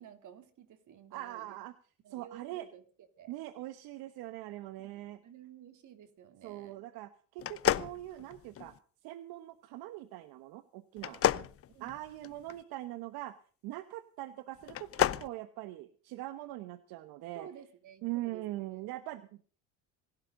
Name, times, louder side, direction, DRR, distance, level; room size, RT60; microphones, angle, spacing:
voice 1, 0.0-1.6 2.0-3.3 4.8-6.9 11.1-12.0 17.3-18.9, right 8 dB, 50° right, 8 dB, 3.1 m, -54 dB
voice 2, 1.1-1.7 2.1-2.7 3.3-5.2 6.4-8.7 9.0-11.2 11.8-13.3 13.6-17.5 18.0-19.4, right 16 dB, 70° right, 12 dB, 1.2 m, -42 dB
sound 1, 7.4-8.8 11.0-12.6 14.6-15.3, left 11 dB, 40° left, 0.7 m, -31 dB
26.0 x 12.0 x 3.9 m, 0.43 s
supercardioid pair, 105°, 37 cm